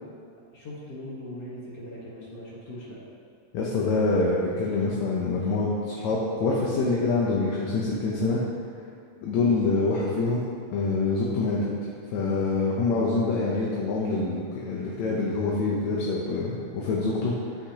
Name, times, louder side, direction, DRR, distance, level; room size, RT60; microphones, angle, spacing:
voice 1, 0.5-3.0 5.4-5.5, equal, 55° left, -7 dB, 2.3 m, -40 dB
voice 2, 3.5-8.4 9.2-10.4 10.7-11.7 12.1-17.3, left 3 dB, 75° left, -4 dB, 2.1 m, -25 dB
10.0 x 9.0 x 2.9 m, 2.3 s
omnidirectional pair, 3.4 m